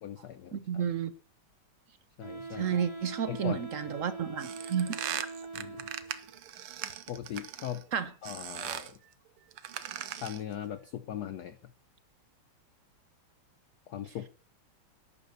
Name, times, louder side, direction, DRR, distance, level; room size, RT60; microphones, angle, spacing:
voice 1, 0.0-0.8 2.2-2.8 3.3-3.6 5.5-5.9 7.1-7.8 8.2-9.0 10.2-11.6 13.9-14.3, left 10 dB, 65° left, 1.1 m, -39 dB
voice 2, 0.5-1.1 2.6-5.0 7.9-8.1, right 7 dB, 55° right, 0.9 m, -31 dB
Wind instrument woodwind instrument, 2.2-6.3, right 4 dB, 45° left, 2.9 m, -43 dB
sound 1, 4.4-7.8 8.2-9.0 9.5-10.5, right 11 dB, 85° right, 1.9 m, -39 dB
11.5 x 10.5 x 6.8 m
omnidirectional pair, 2.3 m